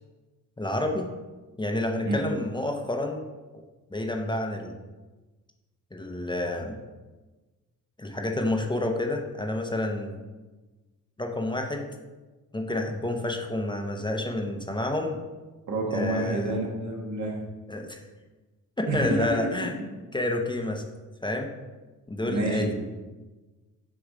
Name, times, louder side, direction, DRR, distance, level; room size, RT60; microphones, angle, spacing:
voice 1, 0.6-1.1 1.6-3.2 3.9-4.7 5.9-6.8 8.0-10.2 11.2-11.9 12.5-15.2 15.9-16.6 17.7-18.0 18.8-19.7 20.1-20.8 21.2-21.5 22.1-22.7, left 1 dB, 15° left, 2 dB, 0.7 m, -29 dB
voice 2, 15.7-17.4 18.9-19.7 22.2-22.7, right 2 dB, 65° right, 0 dB, 1.6 m, -29 dB
8.1 x 3.1 x 5.0 m, 1.2 s
cardioid pair, 100°, 32 cm